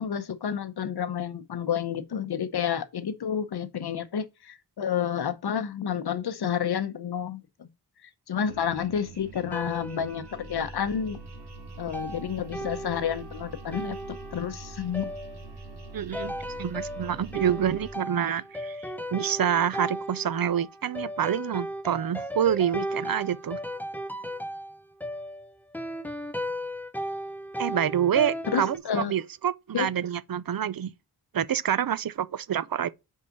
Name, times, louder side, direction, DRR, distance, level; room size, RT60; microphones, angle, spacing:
voice 1, 0.0-7.7 8.0-11.2 11.8-15.1 28.5-29.1 29.7-29.9, left 8 dB, 75° left, 0.9 m, -30 dB
sound 1, 8.5-17.9, right 3 dB, 90° right, 2.5 m, -44 dB
sound 2, 9.5-11.0 11.9-28.8, equal, 5° left, 0.6 m, -36 dB
voice 2, 15.9-23.6 27.6-30.9 31.3-32.9, right 9 dB, 60° right, 0.6 m, -27 dB
5.5 x 4.8 x 5.1 m
wide cardioid pair, 120°, 39 cm